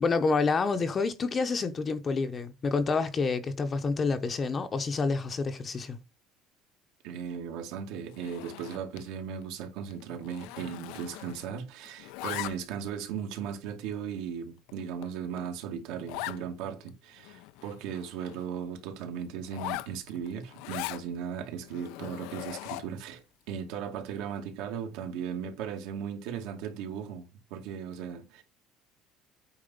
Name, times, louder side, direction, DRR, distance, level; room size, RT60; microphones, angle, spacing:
voice 1, 0.0-6.0, left 4 dB, 20° left, 0.8 m, -28 dB
voice 2, 7.0-28.4, right 8 dB, 75° right, 2.2 m, -37 dB
Zipper (clothing), 8.1-9.1 9.4-9.6 9.9-11.6 11.9-12.9 13.5-13.6 14.2-14.3 14.7-14.8 15.0-15.1 15.4-15.5 16.1-16.4 16.9-17.0 17.2-18.5 19.4-21.0 21.6-23.0, left 17 dB, 75° left, 0.5 m, -40 dB
8.7 x 4.2 x 5.5 m
cardioid pair, 175°, 0 cm